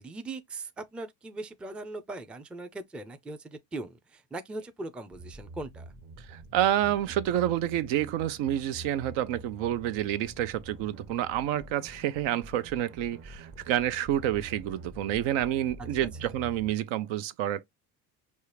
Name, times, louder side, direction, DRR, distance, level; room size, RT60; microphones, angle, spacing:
voice 1, 0.0-5.9 16.0-16.3, right 2 dB, 5° right, 0.3 m, -40 dB
sound 1, 5.1-16.7, right 2 dB, 30° right, 0.7 m, -46 dB
voice 2, 6.3-17.6, right 12 dB, 75° right, 0.7 m, -29 dB
5.4 x 2.4 x 3.2 m
cardioid pair, 105°, 45 cm